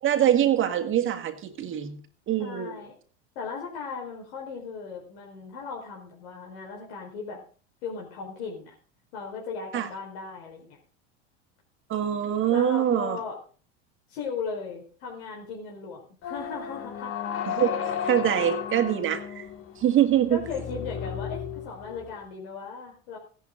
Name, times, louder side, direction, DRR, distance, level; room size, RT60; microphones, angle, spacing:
voice 1, 0.0-2.0 2.3-2.8 9.7-9.9 11.9-13.2 17.6-17.7 18.0-19.5 19.8-20.4, right 10 dB, 40° right, 2.0 m, -24 dB
voice 2, 2.4-3.0 3.3-7.4 7.8-8.7 9.1-10.8 12.5-13.4 14.1-17.1 20.3-23.2, left 5 dB, 75° left, 4.8 m, -37 dB
sound 1, 16.2-22.2, left 8 dB, 40° left, 2.3 m, -34 dB
16.0 x 11.5 x 3.9 m
supercardioid pair, 110°, 32 cm